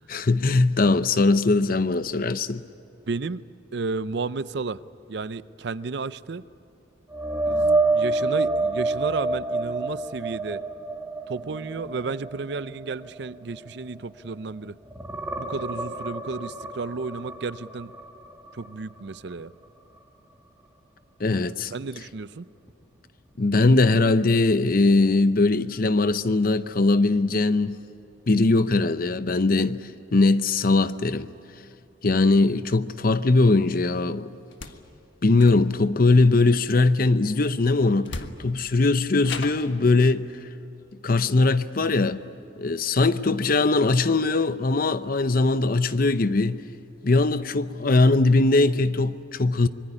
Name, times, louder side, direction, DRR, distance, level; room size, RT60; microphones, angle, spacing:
voice 1, 0.1-2.6 21.2-21.7 23.4-27.8 28.3-29.8 30.1-31.3 32.0-34.3 35.2-40.2 41.0-42.2 42.6-46.6 47.0-49.7, left 3 dB, 50° left, 0.7 m, -20 dB
voice 2, 3.1-3.4 3.7-4.8 5.1-6.4 7.5-10.6 11.3-14.7 15.4-17.9 18.5-19.5 21.7-22.5, right 4 dB, 60° right, 0.5 m, -32 dB
sound 1, 7.1-14.5 14.9-18.7 19.1-19.3 22.7-22.8, right 3 dB, 15° right, 2.0 m, -28 dB
sound 2, 34.5-34.8 35.3-35.9 37.5-37.6 38.0-38.7 39.2-39.8, left 3 dB, 75° left, 1.5 m, -36 dB
25.5 x 22.0 x 10.0 m
head